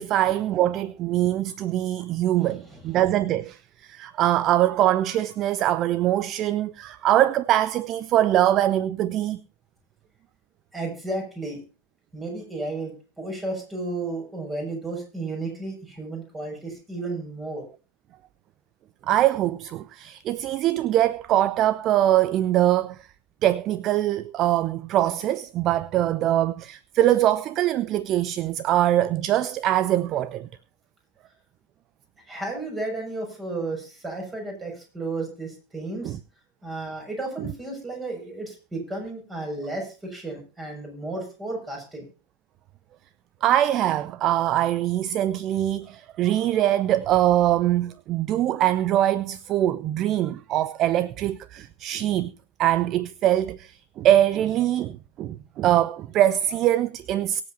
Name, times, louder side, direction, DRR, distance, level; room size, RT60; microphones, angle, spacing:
voice 1, 0.0-9.4 19.0-23.1 23.4-30.5 36.0-36.2 43.4-52.3 52.6-57.4, right 13 dB, 35° right, 0.5 m, -23 dB
voice 2, 10.7-11.6 12.1-12.9 13.2-17.7 32.3-36.2 36.6-42.0, right 2 dB, 15° right, 6.4 m, -33 dB
23.5 x 7.9 x 2.7 m
figure-of-eight pair, 90°, 0 cm